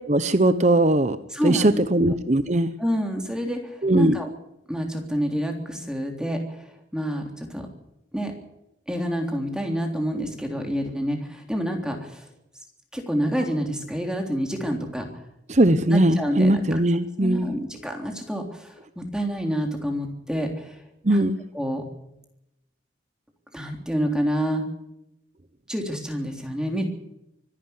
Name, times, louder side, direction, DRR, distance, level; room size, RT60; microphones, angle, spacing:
voice 1, 0.1-1.2 1.4-2.7 3.8-4.2 15.5-17.5 21.0-21.4, right 1 dB, 35° right, 11 dB, 0.9 m, -19 dB
voice 2, 1.3-1.9 2.8-4.3 4.7-7.7 8.1-8.3 8.9-12.3 12.9-15.1 15.9-16.8 17.2-20.8 21.1-21.3 21.5-21.8 23.5-24.6 25.7-26.8, equal, 5° right, 3 dB, 3.4 m, -28 dB
25.0 x 11.5 x 9.6 m, 0.86 s
head